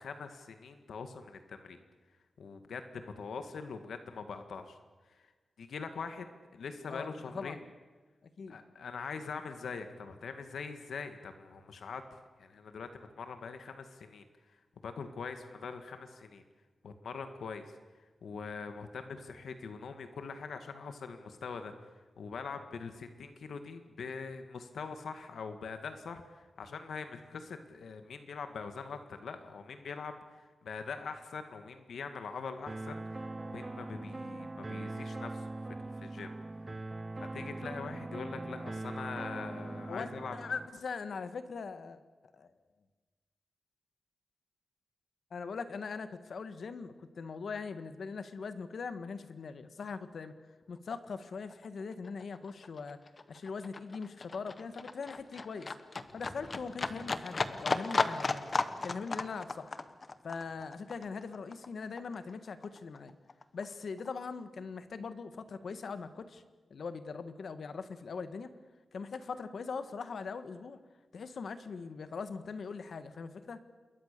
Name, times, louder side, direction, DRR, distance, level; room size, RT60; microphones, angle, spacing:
voice 1, 0.0-1.8 2.4-4.8 5.6-7.6 8.5-12.0 12.4-14.2 14.8-16.4 16.8-17.7 18.2-21.7 22.2-30.2 30.6-35.5 35.8-36.3 37.2-40.3, left 5 dB, 80° left, 8 dB, 1.9 m, -43 dB
voice 2, 6.9-7.6 8.4-8.6 39.9-42.0 42.3-42.5 45.3-50.3 50.7-53.0 53.3-55.7 56.1-58.4 58.8-59.8 60.2-63.1 63.5-66.4 66.7-68.5 68.9-70.8 71.1-73.6, left 5 dB, 60° left, 10 dB, 1.7 m, -41 dB
sound 1, 32.7-40.7, right 2 dB, 20° right, 0.9 m, -41 dB
Livestock farm animals working animals, 50.9-51.1 51.3-62.3 62.6-63.7 64.0-64.1, left 3 dB, 35° left, 1.1 m, -35 dB
27.5 x 22.0 x 6.9 m, 1.3 s
wide cardioid pair, 165°, 0 cm